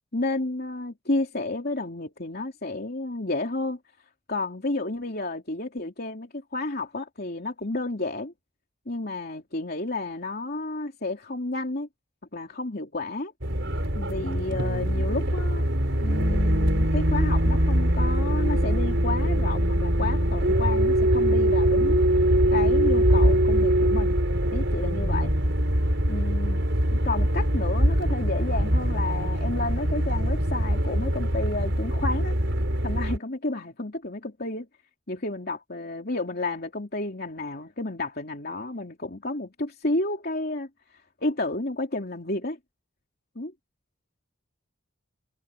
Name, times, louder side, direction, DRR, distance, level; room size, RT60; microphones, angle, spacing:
voice 1, 0.1-3.8 4.3-8.3 8.9-11.9 12.3-13.3 13.9-15.6 16.0-22.1 22.5-24.2 24.5-25.3 26.1-26.6 26.9-32.3 32.8-34.7 35.1-40.7 41.2-42.6 43.3-43.5, left 2 dB, 50° left, 3.2 m, -31 dB
sound 1, 13.4-33.2, right 1 dB, 65° right, 5.6 m, -23 dB
head